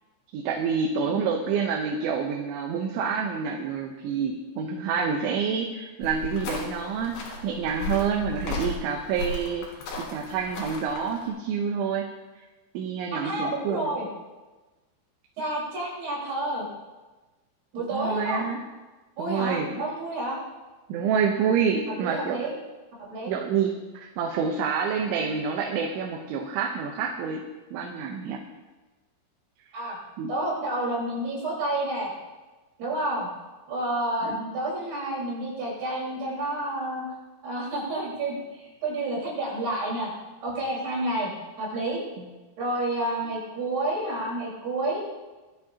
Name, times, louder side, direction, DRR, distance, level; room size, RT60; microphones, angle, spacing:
voice 1, 0.3-7.2 7.4-9.7 10.0-12.1 12.7-14.0 17.8-18.6 19.2-19.7 20.9-22.4 23.3-27.4 27.7-28.4 30.2-30.3 34.2-34.4 42.2-42.3, right 6 dB, 85° right, 1 dB, 3.4 m, -28 dB
sound 1, 6.0-11.2, left 3 dB, 70° left, 4.6 m, -35 dB
voice 2, 13.1-14.1 15.4-16.7 17.7-18.5 19.2-20.4 22.0-22.5 23.0-23.3 29.7-30.0 30.3-32.1 32.8-33.3 33.7-37.0 37.4-40.1 40.4-41.3 41.6-42.0 42.6-45.0, right 1 dB, 60° right, -5 dB, 6.3 m, -29 dB
19.0 x 12.5 x 2.9 m, 1.2 s
omnidirectional pair, 5.3 m